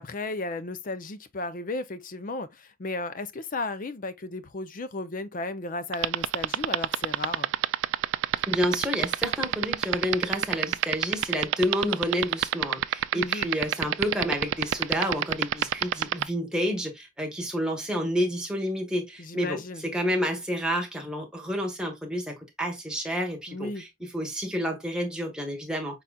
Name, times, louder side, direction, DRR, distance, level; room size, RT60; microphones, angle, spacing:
voice 1, 0.0-7.5 13.1-13.5 19.2-19.8 23.5-23.9, left 2 dB, 40° left, 0.5 m, -34 dB
fappy laser, 5.9-16.2, right 11 dB, 70° right, 0.3 m, -24 dB
voice 2, 8.5-19.6 19.9-23.9 24.1-26.0, equal, 5° right, 1.2 m, -29 dB
5.6 x 3.9 x 2.3 m
head